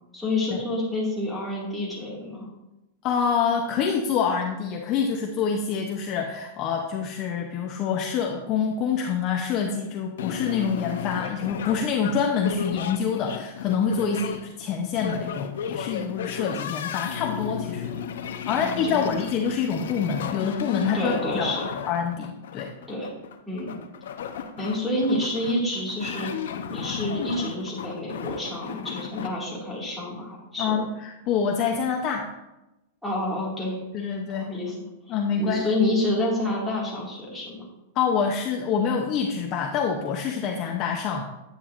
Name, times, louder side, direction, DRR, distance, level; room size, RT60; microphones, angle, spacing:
voice 1, 0.1-2.5 14.0-14.3 18.5-19.1 20.9-21.7 22.9-23.1 23.5-23.8 24.6-26.3 26.7-30.8 33.0-34.7 35.4-37.7, left 1 dB, ahead, -7 dB, 2.2 m, -29 dB
voice 2, 3.0-17.9 18.5-21.6 21.9-22.7 30.6-32.3 33.9-34.5 35.1-35.7 37.9-41.2, left 6 dB, 30° left, 2 dB, 0.7 m, -26 dB
sound 1, 10.2-29.3, left 7 dB, 80° left, 0.7 m, -34 dB
9.9 x 9.0 x 2.5 m, 0.96 s
supercardioid pair, 165°, 0 cm